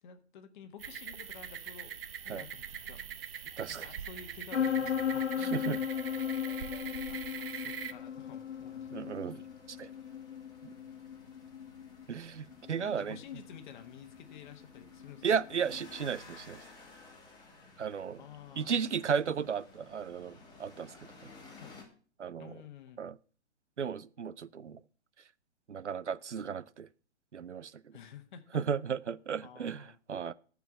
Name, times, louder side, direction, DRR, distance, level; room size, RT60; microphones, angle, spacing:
voice 1, 0.0-1.9 2.2-5.8 7.1-8.9 12.8-15.2 18.2-18.7 21.5-21.7 22.4-23.0 27.9-28.6 29.4-30.0, left 8 dB, 45° left, 1.5 m, -51 dB
sound 1, 0.8-7.9, right 8 dB, 55° right, 1.0 m, -43 dB
voice 2, 3.6-3.9 5.4-5.8 8.9-9.4 9.7-9.9 12.1-13.2 15.2-16.6 17.8-18.2 18.6-20.9 22.2-22.5 23.0-23.2 23.8-24.8 25.7-26.9 27.3-27.7 28.5-30.3, right 7 dB, 90° right, 0.6 m, -34 dB
sound 2, 4.5-16.0, left 8 dB, 80° left, 0.8 m, -37 dB
sound 3, 7.9-21.8, left 3 dB, 10° left, 2.7 m, -56 dB
13.5 x 4.8 x 7.2 m
figure-of-eight pair, 125°, 34 cm